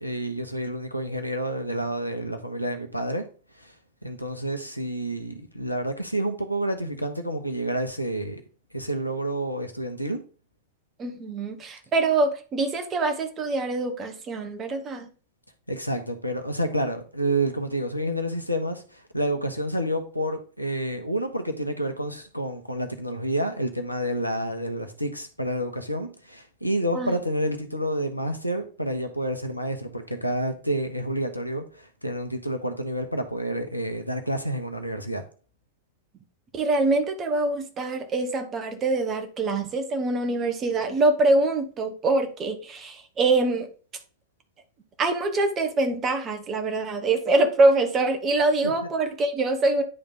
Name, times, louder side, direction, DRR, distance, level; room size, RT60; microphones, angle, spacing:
voice 1, 0.0-3.2 3.6-3.7 4.0-8.4 8.7-10.2 15.7-35.2, right 1 dB, 90° left, 0.9 m, -29 dB
voice 2, 11.0-15.1 26.9-27.2 36.5-43.7 45.0-49.8, right 2 dB, 25° right, 1.3 m, -24 dB
9.8 x 3.5 x 3.9 m
figure-of-eight pair, 90°, 0 cm